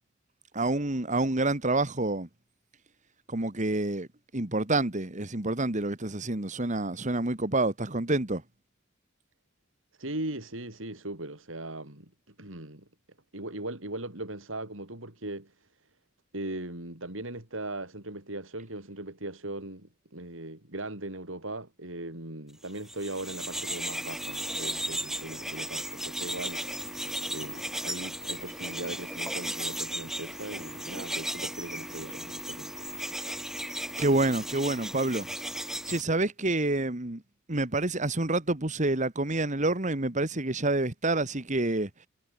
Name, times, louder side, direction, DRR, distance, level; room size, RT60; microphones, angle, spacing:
voice 1, 0.5-2.3 3.3-4.1 4.3-8.4 34.0-35.3 35.9-37.2 37.5-41.9, right 2 dB, 40° right, 2.1 m, -28 dB
voice 2, 10.0-12.1 12.4-12.8 13.3-15.7 16.3-26.8 27.3-32.9, right 2 dB, 80° right, 6.5 m, -39 dB
sound 1, 22.8-36.0, right 1 dB, ahead, 1.6 m, -35 dB
head